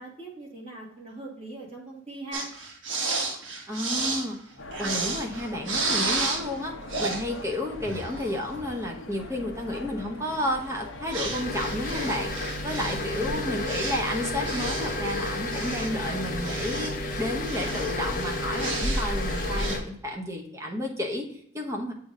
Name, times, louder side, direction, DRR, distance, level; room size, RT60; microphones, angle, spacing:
voice 1, 0.0-2.5 12.6-13.5, right 2 dB, 30° right, -3 dB, 2.1 m, -41 dB
sound 1, 2.3-6.6 6.9-7.2 7.8-8.6 10.4-10.5 11.1-17.1 17.4-19.8, right 3 dB, 70° right, 1.3 m, -32 dB
voice 2, 3.7-4.4 4.8-21.9, left 1 dB, 15° right, 1 dB, 0.9 m, -32 dB
sound 2, 4.6-19.8, left 1 dB, 80° left, 0.8 m, -41 dB
sound 3, 11.0-19.8, left 1 dB, 40° left, 1.0 m, -31 dB
7.7 x 2.8 x 4.8 m, 0.70 s
head